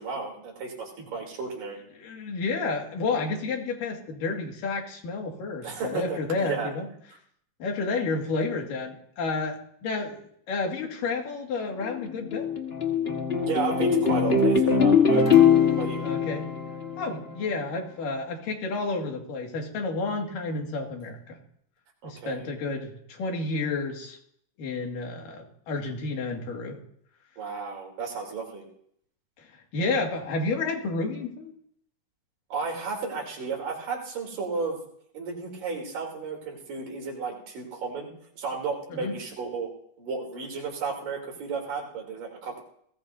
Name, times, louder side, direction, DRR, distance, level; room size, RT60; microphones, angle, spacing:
voice 1, 0.0-1.8 5.6-6.7 13.4-15.3 15.7-16.0 22.0-22.5 27.4-28.7 32.5-34.8 35.1-38.1 38.4-39.7 40.0-42.6, right 4 dB, 85° right, 0 dB, 4.9 m, -33 dB
voice 2, 2.0-6.9 7.6-10.2 10.5-12.5 16.0-16.5 17.0-21.4 22.0-24.2 24.6-26.8 29.4-31.5 38.9-39.1, left 3 dB, 85° left, 1 dB, 3.8 m, -31 dB
sound 1, 11.8-17.4, left 6 dB, 55° left, 0.6 m, -22 dB
20.5 x 17.5 x 2.7 m, 0.69 s
omnidirectional pair, 3.7 m